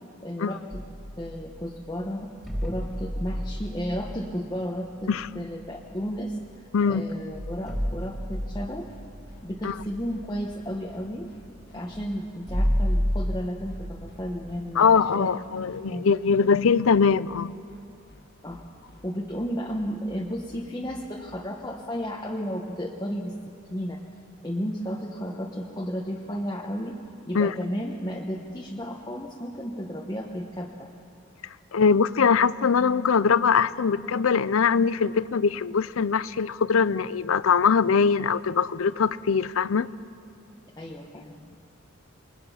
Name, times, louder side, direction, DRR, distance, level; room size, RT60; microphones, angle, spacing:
voice 1, 0.2-0.8 1.2-2.3 2.6-8.9 9.4-11.3 11.7-15.3 15.9-16.1 18.4-18.6 19.0-23.3 23.7-24.0 24.4-27.0 27.3-30.9 40.8-41.5, equal, 20° left, -1 dB, 1.1 m, -33 dB
sound 1, 0.7-1.6 2.4-6.4 6.9-7.0 7.3-14.2, equal, ahead, 2.6 m, -31 dB
voice 2, 5.1-5.4 6.7-7.0 9.6-9.7 14.8-17.5 27.3-27.5 31.7-39.9, left 5 dB, 75° left, 17 dB, 0.5 m, -22 dB
sound 2, 8.9-21.5, equal, 50° left, 1.9 m, -53 dB
28.0 x 21.5 x 5.7 m, 2.6 s
head